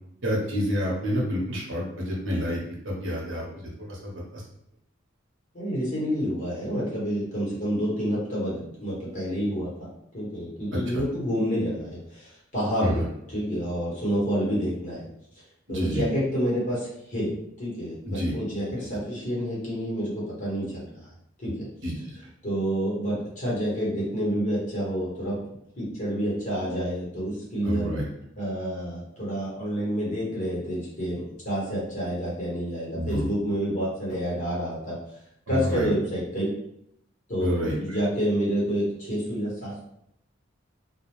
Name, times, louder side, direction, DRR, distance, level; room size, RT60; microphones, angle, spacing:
voice 1, 0.2-2.6 2.8-3.4 3.9-4.4 10.9-11.0 12.8-13.0 15.7-16.0 18.1-18.3 21.8-22.1 27.6-28.0 32.9-33.3 35.5-35.9 37.4-38.0, equal, 75° right, -3 dB, 0.8 m, -28 dB
voice 2, 5.5-15.1 15.7-17.3 17.6-21.1 21.4-21.7 22.4-25.4 25.8-27.9 28.4-35.0 35.5-36.5 37.3-39.8, equal, 40° left, -7 dB, 1.2 m, -28 dB
2.4 x 2.2 x 3.0 m, 0.76 s
head